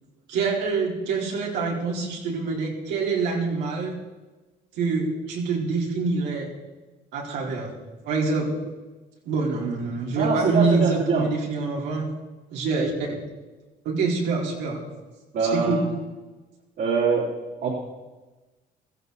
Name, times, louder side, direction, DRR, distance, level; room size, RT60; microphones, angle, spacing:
voice 1, 0.3-4.0 4.7-6.5 7.1-7.7 8.0-8.5 9.3-12.1 12.5-12.9 13.8-14.8 15.5-15.8, right 4 dB, 85° right, -2 dB, 4.3 m, -25 dB
voice 2, 10.1-11.2 15.3-15.8 16.8-17.3 17.6-17.7, right 4 dB, 65° right, -3 dB, 3.2 m, -23 dB
16.0 x 15.0 x 4.1 m, 1.2 s
cardioid pair, 110°, 17 cm